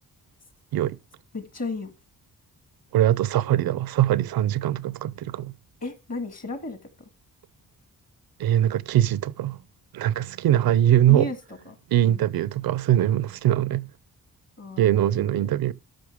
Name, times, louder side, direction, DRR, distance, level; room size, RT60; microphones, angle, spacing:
voice 1, 1.3-1.9 5.8-6.8 11.1-11.4 11.7-11.8 12.0-12.2 14.6-15.5, left 3 dB, 45° left, 1.8 m, -34 dB
voice 2, 2.9-5.5 8.4-9.6 9.9-11.3 11.9-13.9 14.8-15.7, right 12 dB, 85° right, 0.5 m, -22 dB
12.5 x 5.7 x 3.5 m
cardioid pair, 90°, 35 cm